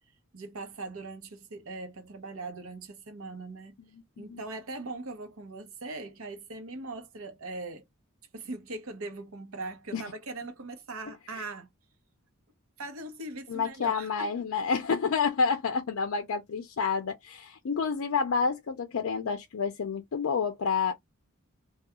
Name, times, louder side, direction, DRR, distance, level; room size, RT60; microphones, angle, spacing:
voice 1, 0.3-3.8 4.2-7.8 8.3-11.7 12.8-14.3, right 2 dB, 75° right, 0.8 m, -40 dB
voice 2, 13.5-20.9, left 5 dB, 70° left, 0.4 m, -29 dB
2.3 x 2.3 x 2.8 m
head